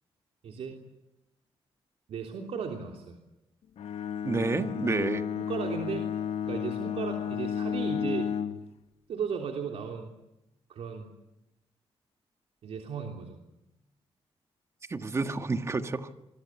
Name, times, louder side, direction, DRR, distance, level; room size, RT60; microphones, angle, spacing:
voice 1, 0.4-0.7 2.1-3.2 5.3-6.1 6.4-8.3 9.1-10.1 10.7-11.1 12.6-13.4, right 6 dB, 85° right, 2 dB, 3.3 m, -35 dB
Bowed string instrument, 3.8-8.7, left 8 dB, 85° left, 1.3 m, -32 dB
voice 2, 4.2-5.2 14.9-16.1, right 3 dB, 25° right, 9 dB, 1.6 m, -29 dB
26.5 x 23.5 x 7.5 m, 0.91 s
wide cardioid pair, 150°, 10 cm